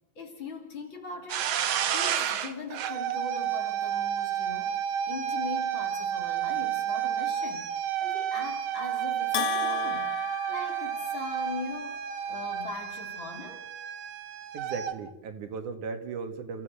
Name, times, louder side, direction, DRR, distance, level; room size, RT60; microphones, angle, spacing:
voice 1, 0.2-1.5 1.9-4.8 5.1-10.2 10.5-12.0 12.3-13.7, left 3 dB, 40° left, 3 dB, 3.6 m, -40 dB
sound 1, 1.3-14.9, right 10 dB, 65° right, 2.0 m, -31 dB
Bell, 9.3-11.5, left 12 dB, 70° left, 1.3 m, -34 dB
voice 2, 14.5-16.6, right 5 dB, 80° right, 7 dB, 3.3 m, -37 dB
29.5 x 15.0 x 6.6 m, 0.82 s
omnidirectional pair, 3.4 m